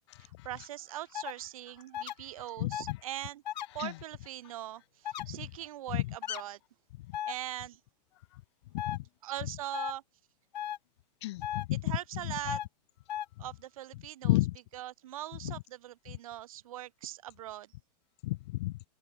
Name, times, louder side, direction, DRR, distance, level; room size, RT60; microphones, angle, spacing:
voice 1, 0.2-3.4 3.7-6.6 7.3-7.8 9.2-10.0 11.8-12.6 13.4-14.4 14.7-17.7, right 13 dB, 55° right, 2.9 m, -41 dB
sound 1, 1.1-1.3 1.9-2.1 2.7-2.9 3.5-3.7 5.1-5.2 6.2-6.4 7.1-7.3 8.8-9.0 9.7-9.9 10.5-10.8 11.4-11.6 12.5-12.7 13.1-13.3, left 11 dB, 85° left, 1.3 m, -35 dB
voice 2, 2.6-3.0 3.8-3.9 5.2-5.3 5.9-6.1 8.8-9.0 11.2-11.9 12.2-12.3 14.2-14.6 15.4-15.6 18.2-18.7, left 18 dB, 40° left, 1.5 m, -31 dB
open air
supercardioid pair, 175°, 21 cm